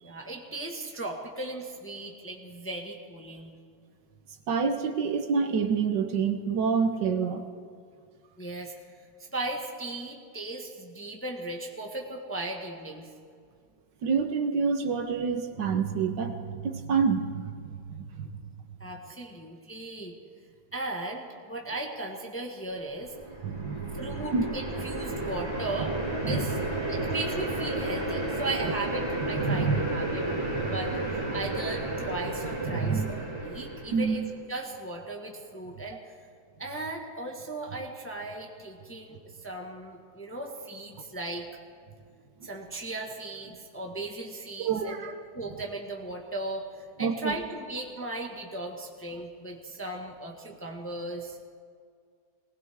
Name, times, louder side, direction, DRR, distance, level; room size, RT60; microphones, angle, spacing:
voice 1, 0.0-3.5 8.4-8.7 9.2-13.1 18.8-20.2 20.7-23.2 23.4-23.6 23.9-26.0 26.3-26.6 26.9-30.2 30.7-31.0 31.3-34.2 34.5-36.2 36.6-41.5 42.4-45.0 45.3-51.5, right 2 dB, 10° left, 1 dB, 1.1 m, -37 dB
voice 2, 4.5-7.4 14.0-18.3 23.4-24.4 26.2-26.5 28.6-28.7 29.4-29.8 32.7-33.1 33.9-34.2 44.6-45.1 47.0-47.3, right 5 dB, 65° right, 5 dB, 1.6 m, -27 dB
sound 1, 22.9-34.3, right 2 dB, 30° right, 2.7 m, -32 dB
20.0 x 19.5 x 3.6 m, 2.2 s
omnidirectional pair, 2.1 m